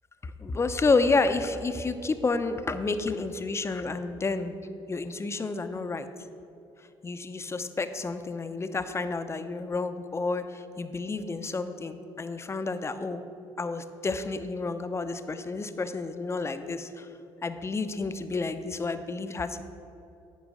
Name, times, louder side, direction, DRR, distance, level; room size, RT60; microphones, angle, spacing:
voice 1, 0.2-4.6 4.9-6.1 7.0-13.2 13.6-17.1 17.4-19.6, left 3 dB, 25° left, 9 dB, 0.6 m, -30 dB
9.4 x 4.7 x 6.1 m, 2.8 s
supercardioid pair, 70°, 11 cm